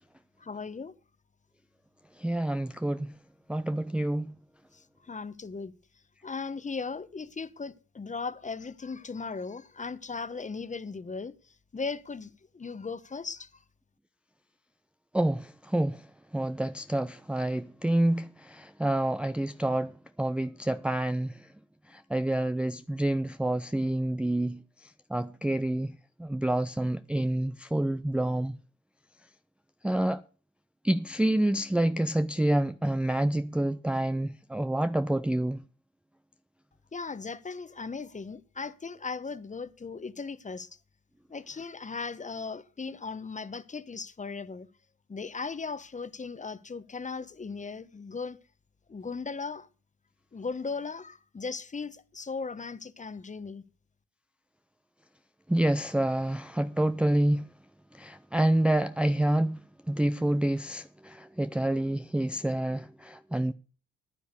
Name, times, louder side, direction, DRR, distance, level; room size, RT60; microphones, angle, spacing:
voice 1, 0.4-0.9 4.7-5.7 6.2-11.4 11.7-13.6 36.9-40.7 41.3-44.7 45.1-48.4 48.9-49.7 50.3-53.6, left 4 dB, 25° left, 1.0 m, -37 dB
voice 2, 2.2-3.1 3.5-4.3 15.1-16.1 16.3-19.9 20.2-21.5 21.9-25.9 26.2-28.6 29.8-30.2 30.8-35.6 55.5-57.5 57.9-63.5, right 1 dB, 5° right, 0.5 m, -28 dB
10.0 x 9.8 x 6.7 m
cardioid pair, 90°, 30 cm